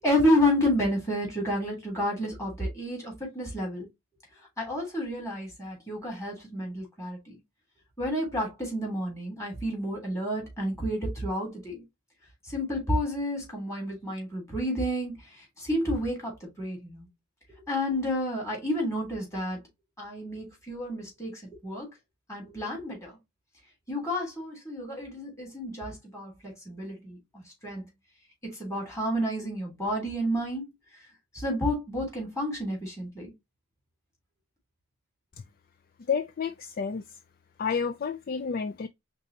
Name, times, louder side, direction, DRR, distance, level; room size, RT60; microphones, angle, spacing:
voice 1, 0.0-3.9 4.6-7.4 8.0-11.8 12.4-17.1 17.7-19.6 20.0-21.9 22.3-23.1 23.9-27.9 28.4-30.7 31.3-33.3, equal, 15° left, 3.0 m, -30 dB
voice 2, 36.1-37.0 37.6-38.9, left 6 dB, 40° left, 0.3 m, -30 dB
4.6 x 4.0 x 2.8 m
head